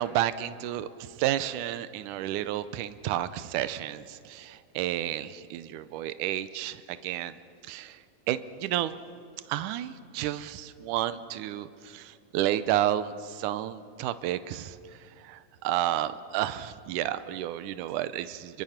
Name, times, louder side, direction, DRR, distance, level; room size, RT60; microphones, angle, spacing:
voice 1, 0.0-9.0 9.5-18.6, right 12 dB, 85° right, 13 dB, 2.3 m, -31 dB
29.0 x 22.5 x 5.8 m, 2.5 s
omnidirectional pair, 3.6 m